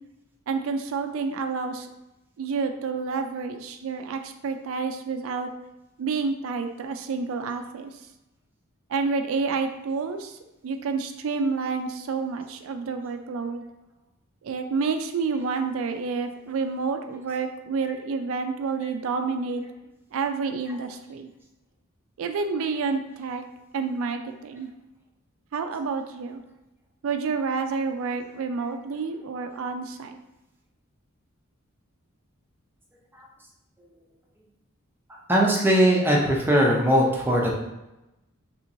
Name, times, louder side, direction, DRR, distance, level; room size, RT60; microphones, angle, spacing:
voice 1, 0.5-1.9 2.4-5.5 6.0-8.0 8.9-13.6 14.4-19.6 20.1-21.3 22.2-23.5 23.7-24.7 25.5-26.4 27.0-30.2, right 4 dB, 70° right, 7 dB, 0.3 m, -29 dB
voice 2, 35.3-37.6, equal, 10° right, -3 dB, 0.6 m, -20 dB
3.3 x 2.9 x 2.7 m, 0.95 s
head